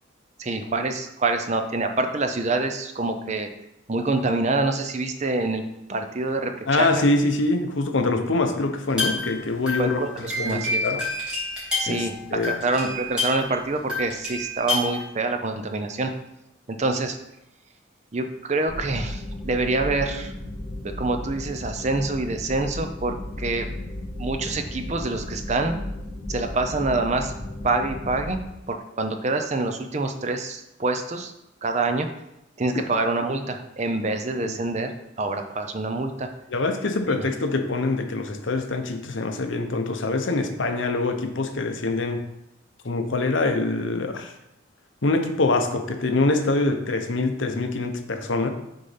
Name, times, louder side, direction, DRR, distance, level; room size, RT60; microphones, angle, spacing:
voice 1, 0.4-3.5 3.9-5.6 5.9-6.9 9.8-10.8 11.8-16.1 16.7-17.2 18.1-20.3 20.8-23.7 24.2-25.8 26.3-27.3 27.6-28.4 28.7-31.3 31.6-32.1 32.6-34.9 35.2-36.3 37.0-37.3, right 3 dB, 35° right, 6 dB, 0.6 m, -26 dB
voice 2, 6.7-10.0 10.4-11.0 11.9-12.5 32.7-32.8 34.4-34.5 36.5-42.2 42.8-44.3 45.0-48.5, left 2 dB, 70° left, 6 dB, 0.8 m, -24 dB
sound 1, 8.9-13.6 13.9-15.0, left 2 dB, 5° right, 2.4 m, -29 dB
sound 2, 18.7-28.4, left 1 dB, 55° left, 1.4 m, -34 dB
6.5 x 4.0 x 5.7 m, 0.85 s
head